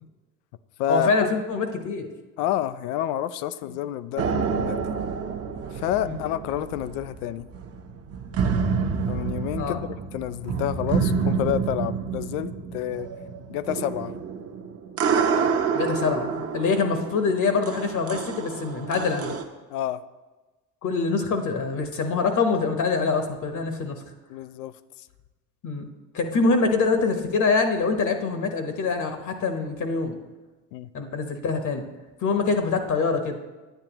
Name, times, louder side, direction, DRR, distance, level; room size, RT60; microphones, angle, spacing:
voice 1, 0.9-2.1 6.0-6.2 9.6-9.8 15.7-19.4 20.8-24.0 25.6-25.9 26.1-30.1 30.9-31.9 32.2-33.4, left 4 dB, 40° left, 6 dB, 1.0 m, -24 dB
voice 2, 2.4-4.8 5.7-7.5 9.1-13.1 13.5-14.2 19.7-20.0 24.3-24.7 30.7-30.9, left 12 dB, 70° left, 14 dB, 0.6 m, -29 dB
sound 1, 4.2-19.4, right 6 dB, 30° right, 0.9 m, -28 dB
9.4 x 9.1 x 3.0 m, 1.2 s
hypercardioid pair, 80°, 47 cm